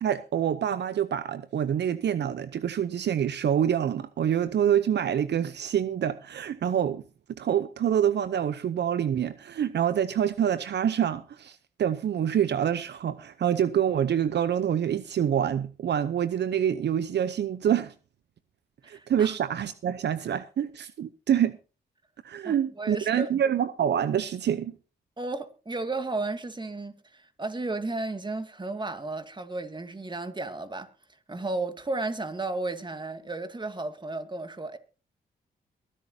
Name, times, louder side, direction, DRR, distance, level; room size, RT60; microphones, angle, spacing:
voice 1, 0.0-7.0 7.3-17.9 18.9-21.6 22.2-24.8, right 9 dB, 70° right, 0.8 m, -26 dB
voice 2, 18.8-19.3 22.4-23.3 25.2-30.9 31.3-34.8, right 2 dB, 25° right, 2.2 m, -33 dB
23.0 x 11.0 x 2.8 m
supercardioid pair, 55°, 19 cm